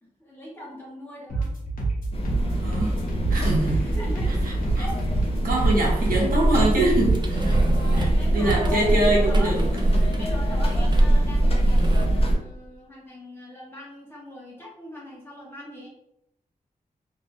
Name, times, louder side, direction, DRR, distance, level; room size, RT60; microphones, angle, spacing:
voice 1, 0.0-1.5 3.5-4.3 4.7-5.0 5.5-5.6 6.2-6.3 7.6-9.6 10.2-15.9, left 1 dB, 15° left, -5 dB, 1.0 m, -40 dB
sound 1, 1.3-8.9, right 3 dB, 75° left, 1.0 m, -28 dB
sound 2, 2.1-12.4, right 1 dB, 40° left, 0.5 m, -23 dB
voice 2, 2.5-3.0 3.3-3.8 4.4-4.8 5.4-7.6 8.0-8.1 8.3-9.6 10.0-10.1, right 2 dB, 80° right, -2 dB, 0.8 m, -24 dB
sound 3, 5.9-6.2 7.1-8.9 9.3-11.3 11.6-12.1, right 2 dB, 30° right, 0.4 m, -35 dB
2.8 x 2.6 x 2.5 m, 0.83 s
wide cardioid pair, 120°, 15 cm